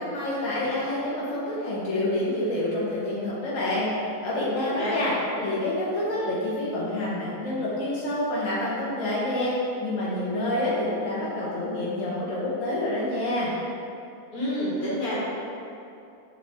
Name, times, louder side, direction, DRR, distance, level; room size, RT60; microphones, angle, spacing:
voice 1, 0.0-5.1 5.4-13.5, left 1 dB, 65° left, -8 dB, 1.5 m, -27 dB
voice 2, 14.3-15.2, equal, 85° left, -8 dB, 2.0 m, -28 dB
6.7 x 4.1 x 3.5 m, 2.6 s
omnidirectional pair, 1.5 m